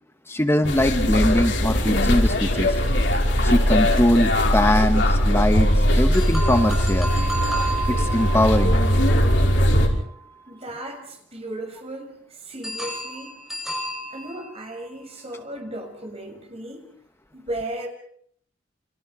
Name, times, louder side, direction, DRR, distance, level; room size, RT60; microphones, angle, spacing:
voice 1, 0.3-2.8 3.1-7.1 7.9-8.8, left 1 dB, 15° left, 8 dB, 1.0 m, -22 dB
sound 1, 0.6-9.9, equal, 80° left, 5.5 m, -20 dB
sound 2, 6.1-10.2 12.6-15.0, right 2 dB, ahead, 7.6 m, -32 dB
voice 2, 10.5-13.4 14.1-16.9 17.3-17.9, right 1 dB, 35° right, 3 dB, 6.8 m, -35 dB
29.5 x 26.5 x 4.8 m, 0.63 s
head